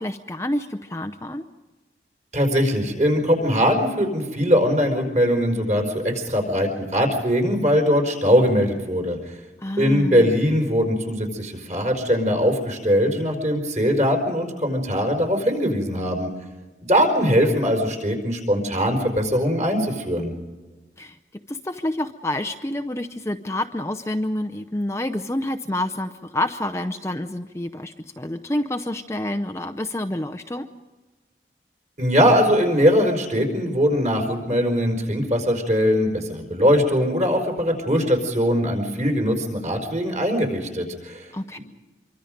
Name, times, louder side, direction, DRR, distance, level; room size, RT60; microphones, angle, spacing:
voice 1, 0.0-1.4 9.6-10.3 21.0-30.7 41.3-41.6, left 1 dB, 15° left, 8 dB, 0.6 m, -28 dB
voice 2, 2.3-9.4 9.8-16.3 16.8-20.3 32.0-41.3, equal, 40° right, 3 dB, 4.9 m, -21 dB
26.0 x 24.0 x 5.2 m, 1.2 s
head